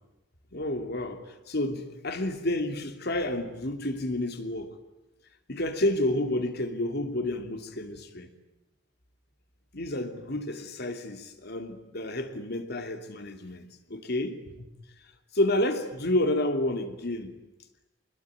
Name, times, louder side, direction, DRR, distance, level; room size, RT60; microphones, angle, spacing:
voice 1, 0.5-4.7 5.5-8.3 9.7-14.4 15.3-17.4, left 1 dB, 60° left, 2.9 m, -30 dB
26.5 x 21.0 x 9.5 m
head